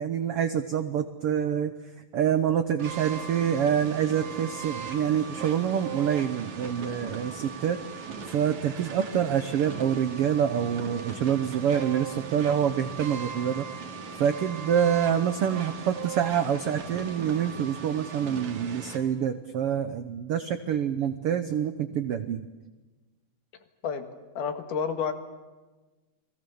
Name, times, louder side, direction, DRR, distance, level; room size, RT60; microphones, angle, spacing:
voice 1, 0.0-1.7 2.1-7.8 8.2-13.7 14.2-22.5, right 8 dB, 80° right, 10 dB, 1.3 m, -26 dB
sound 1, 2.8-19.0, right 6 dB, 60° right, 3.6 m, -38 dB
voice 2, 24.3-25.1, left 6 dB, 70° left, 7 dB, 3.3 m, -29 dB
30.0 x 21.0 x 7.1 m, 1.2 s
omnidirectional pair, 3.9 m